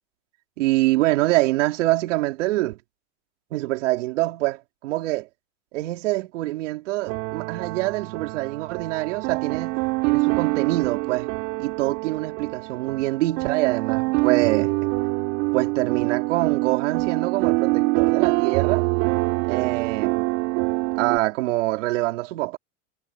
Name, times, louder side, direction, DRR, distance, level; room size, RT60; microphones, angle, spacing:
voice 1, 0.6-2.8 3.5-5.3 5.7-9.8 10.1-11.3 11.6-14.7 15.5-18.9 19.5-20.3 21.0-22.6, right 18 dB, 80° right, 4.7 m, -25 dB
sound 1, 7.1-21.2, right 27 dB, 65° right, 3.7 m, -25 dB
supercardioid pair, 135°, 36 cm